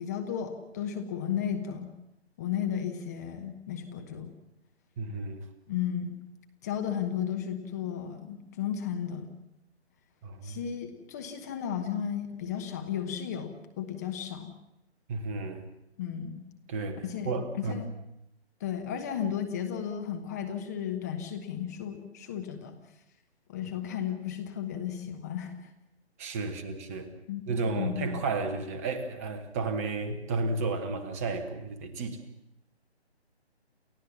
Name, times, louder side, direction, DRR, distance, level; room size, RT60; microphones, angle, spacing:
voice 1, 0.0-1.9 2.4-4.3 5.7-6.2 6.6-9.3 10.4-14.5 16.0-16.4 17.0-17.9 18.6-22.8 23.5-25.6 27.3-27.4 27.7-28.1, left 9 dB, 15° left, 6 dB, 1.1 m, -34 dB
voice 2, 5.0-5.4 10.2-10.6 15.1-15.6 16.7-17.8 26.2-27.1 27.5-32.2, right 3 dB, 15° right, 7 dB, 1.1 m, -32 dB
29.0 x 14.5 x 7.2 m, 0.83 s
figure-of-eight pair, 155°, 33 cm